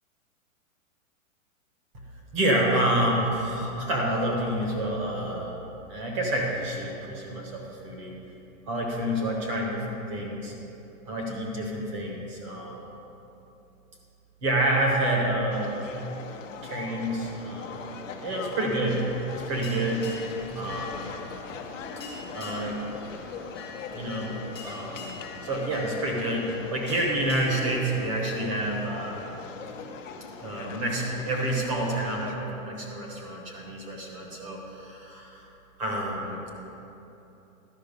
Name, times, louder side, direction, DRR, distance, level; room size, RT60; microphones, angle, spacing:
voice 1, 2.3-5.6 5.9-8.2 8.7-10.5 11.1-12.8 14.4-15.9 16.6-19.0 19.3-20.1 20.5-21.1 22.3-22.9 23.9-24.3 24.6-29.2 30.4-35.5 35.8-36.5, right 1 dB, 25° right, -1 dB, 0.9 m, -28 dB
sound 1, 15.5-32.3, left 5 dB, 65° left, 0.9 m, -41 dB
sound 2, 18.9-27.8, left 4 dB, 20° left, 0.4 m, -44 dB
12.0 x 5.7 x 5.2 m, 3.0 s
hypercardioid pair, 175°, 41 cm